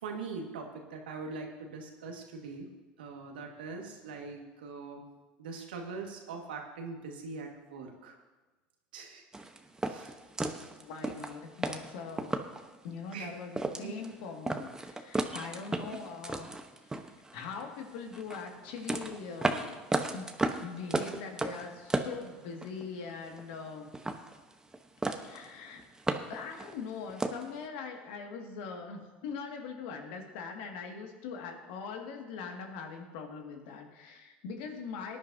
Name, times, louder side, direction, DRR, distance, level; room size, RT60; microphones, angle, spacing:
voice 1, 0.0-2.7 3.0-5.0 5.4-8.2 8.9-9.2 9.8-10.1 13.1-13.3 13.6-14.0, right 4 dB, 90° right, 2 dB, 1.9 m, -42 dB
sound 1, 9.3-12.7 13.1-13.2 13.5-14.1 14.5-17.6 18.1-22.8 23.1-23.7 23.9-24.8 25.0-25.5 25.8-27.5, right 2 dB, 15° right, 1.0 m, -34 dB
voice 2, 10.8-12.3 12.8-16.5 17.3-19.8 20.1-20.3 20.6-23.9 25.1-25.8 26.3-35.2, left 5 dB, 75° left, 2 dB, 2.1 m, -42 dB
18.5 x 10.5 x 2.8 m, 1.2 s
hypercardioid pair, 90°, 5 cm